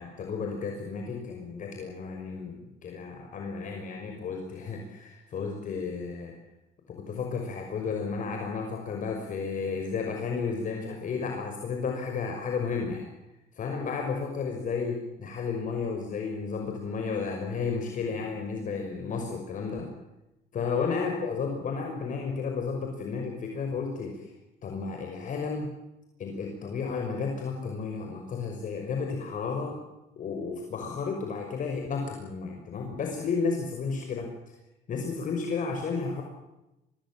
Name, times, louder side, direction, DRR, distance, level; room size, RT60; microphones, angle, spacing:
voice 1, 0.0-6.3 6.9-13.1 13.5-19.9 20.5-24.3 24.6-25.7 26.2-29.8 30.2-34.3 34.9-36.2, left 5 dB, 50° left, 2 dB, 5.9 m, -32 dB
25.5 x 20.5 x 7.7 m, 0.94 s
cardioid pair, 110°, 17 cm